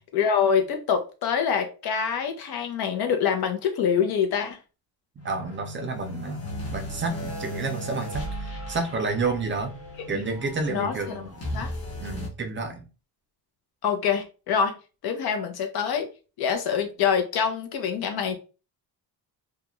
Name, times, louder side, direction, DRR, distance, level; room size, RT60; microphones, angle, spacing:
voice 1, 0.1-4.6 10.1-10.2 10.7-11.2 11.5-11.7 13.8-14.8 15.0-16.1 16.4-18.4, left 7 dB, 65° left, 0.7 m, -25 dB
sound 1, 5.2-12.3, equal, 35° left, 0.9 m, -36 dB
voice 2, 5.2-9.7 10.1-11.4 12.0-12.8, right 3 dB, 30° right, 0.4 m, -30 dB
2.4 x 2.2 x 2.9 m
cardioid pair, 140°, 40 cm